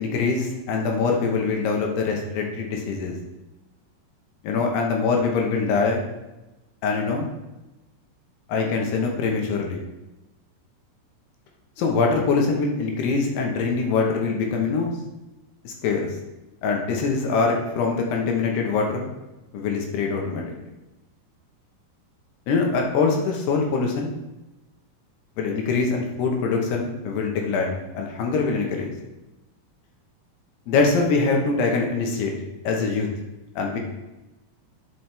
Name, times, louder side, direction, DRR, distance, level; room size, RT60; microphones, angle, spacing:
voice 1, 0.0-3.2 4.4-6.0 6.8-7.3 8.5-9.8 11.8-14.9 15.6-16.1 16.6-19.1 19.5-20.7 22.5-24.1 25.4-28.9 30.7-32.3 32.6-33.1 33.6-33.8, left 4 dB, 80° left, 1 dB, 3.1 m, -23 dB
10.0 x 5.9 x 3.3 m, 1.0 s
omnidirectional pair, 4.8 m